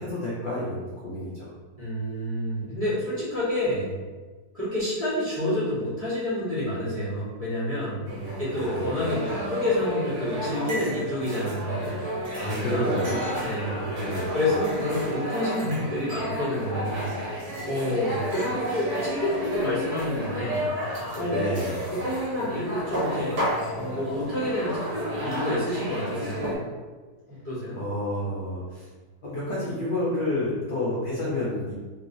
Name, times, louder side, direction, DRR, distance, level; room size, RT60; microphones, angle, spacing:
voice 1, 0.0-1.5 8.1-9.0 12.3-14.4 21.2-21.8 27.7-28.9 29.2-31.7, left 1 dB, 65° left, -8 dB, 0.5 m, -30 dB
voice 2, 1.8-3.9 4.5-8.0 8.4-11.9 12.5-12.9 13.4-13.8 14.3-20.7 21.1-21.4 21.9-23.4 23.7-26.4 27.4-27.8, left 1 dB, 25° right, -10 dB, 1.0 m, -28 dB
sound 1, 8.1-26.6, equal, 50° right, 1.2 m, -32 dB
3.1 x 2.9 x 2.6 m, 1.4 s
omnidirectional pair, 1.8 m